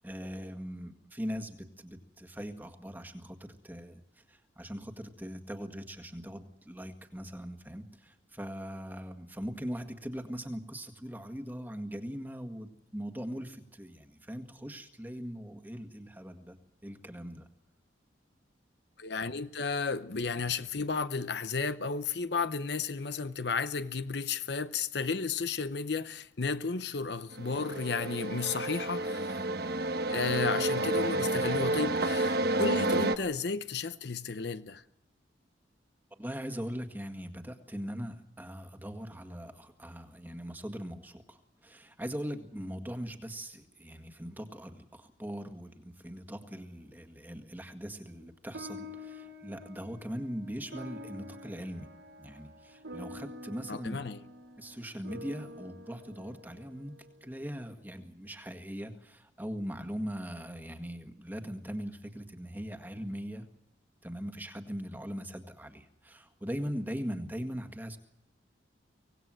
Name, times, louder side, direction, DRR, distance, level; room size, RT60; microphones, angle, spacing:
voice 1, 0.0-16.6 16.8-17.5 36.2-45.7 46.0-51.9 52.2-54.0 54.6-56.9 57.2-63.4 64.0-68.0, equal, 10° right, 1.8 m, -40 dB
voice 2, 19.0-29.4 30.1-34.8 53.7-54.2, left 4 dB, 60° left, 0.8 m, -33 dB
sound 1, 27.3-33.2, right 2 dB, 55° right, 1.2 m, -30 dB
sound 2, 48.5-57.2, left 1 dB, 90° right, 2.8 m, -47 dB
25.0 x 18.5 x 7.6 m
head